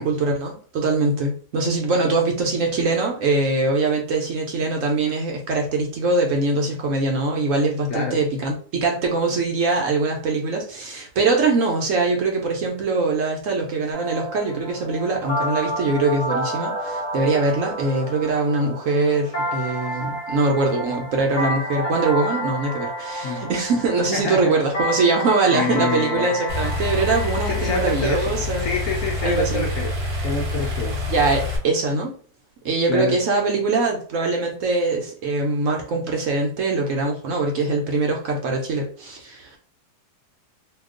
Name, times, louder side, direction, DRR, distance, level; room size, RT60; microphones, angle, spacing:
voice 1, 0.0-28.7 29.2-29.6 31.1-32.1 32.6-39.6, right 3 dB, 65° right, 1 dB, 0.9 m, -22 dB
sound 1, 13.9-29.7, equal, 30° left, 1.1 m, -30 dB
voice 2, 24.1-24.5 25.5-26.3 27.4-29.9 30.2-31.0 32.9-33.2, left 3 dB, 65° left, -1 dB, 0.8 m, -27 dB
sound 2, 26.5-31.6, left 3 dB, 40° right, 0.6 m, -27 dB
2.9 x 2.3 x 3.6 m, 0.43 s
omnidirectional pair, 1.8 m